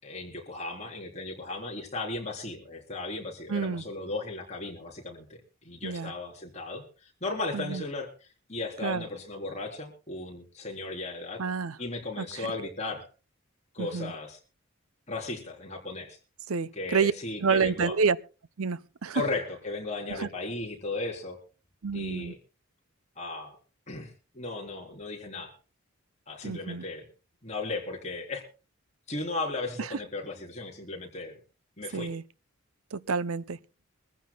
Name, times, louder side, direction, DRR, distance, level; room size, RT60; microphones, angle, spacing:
voice 1, 0.0-8.1 8.5-11.4 11.8-13.0 13.7-14.4 15.1-16.2 16.8-17.9 19.1-21.4 21.9-22.4 23.2-23.6 23.9-25.5 26.3-27.1 27.4-28.4 29.1-31.3 31.8-32.1, left 2 dB, 30° left, 3.7 m, -36 dB
voice 2, 3.5-3.8 5.8-6.1 7.5-7.8 8.8-9.0 11.4-11.8 12.2-12.5 13.8-14.1 16.5-17.1 17.4-18.2 18.6-19.2 20.1-20.3 21.8-22.3 26.4-26.8 29.8-30.0 31.9-32.2 32.9-33.6, right 5 dB, 75° right, 0.7 m, -29 dB
24.0 x 15.0 x 2.3 m
head